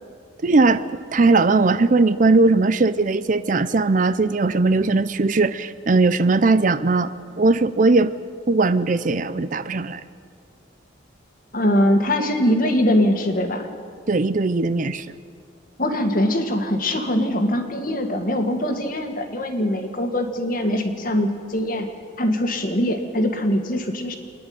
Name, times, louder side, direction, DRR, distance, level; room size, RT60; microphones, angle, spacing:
voice 1, 0.4-0.8 1.1-7.1 7.4-8.1 8.5-10.0 14.1-15.1, right 3 dB, 40° right, 14 dB, 0.5 m, -19 dB
voice 2, 11.5-13.7 15.8-21.9 22.2-24.2, left 1 dB, 45° left, 5 dB, 1.8 m, -22 dB
27.0 x 10.5 x 9.5 m, 2.2 s
head